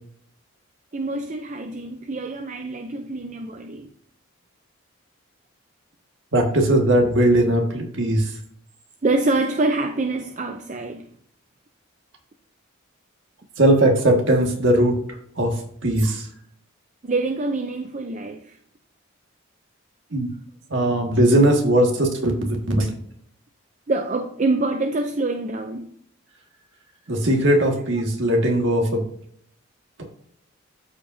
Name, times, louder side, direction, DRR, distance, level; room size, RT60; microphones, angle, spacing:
voice 1, 0.9-3.9 9.0-11.1 17.0-18.6 23.9-25.9, right 2 dB, 35° right, 5 dB, 0.5 m, -25 dB
voice 2, 6.3-8.3 13.6-16.3 20.1-20.3 20.7-22.9 27.1-29.0, right 1 dB, 60° right, 1 dB, 1.7 m, -19 dB
13.0 x 4.9 x 2.7 m, 0.63 s
head